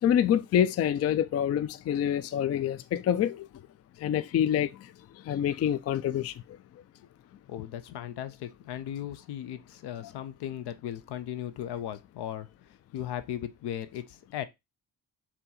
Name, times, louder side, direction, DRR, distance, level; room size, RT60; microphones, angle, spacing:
voice 1, 0.0-3.5 4.0-6.4 10.0-10.1, left 10 dB, 40° left, 0.4 m, -27 dB
voice 2, 7.5-12.5 12.9-14.0 14.3-14.5, left 11 dB, 75° left, 0.6 m, -37 dB
4.2 x 2.9 x 3.9 m
supercardioid pair, 65°, 40 cm